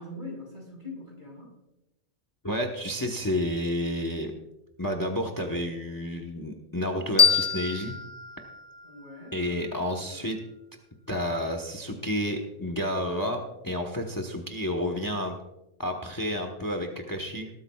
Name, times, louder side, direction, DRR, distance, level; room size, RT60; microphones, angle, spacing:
voice 1, 0.0-1.5 8.8-10.3, left 2 dB, 45° right, -2 dB, 5.3 m, -43 dB
voice 2, 2.4-4.3 4.8-8.0 9.3-10.4 11.1-15.3 15.8-17.5, left 1 dB, 20° left, 3 dB, 1.1 m, -30 dB
sound 1, 7.2-10.0, left 6 dB, 50° left, 1.0 m, -26 dB
19.0 x 13.0 x 2.4 m, 0.91 s
omnidirectional pair, 1.2 m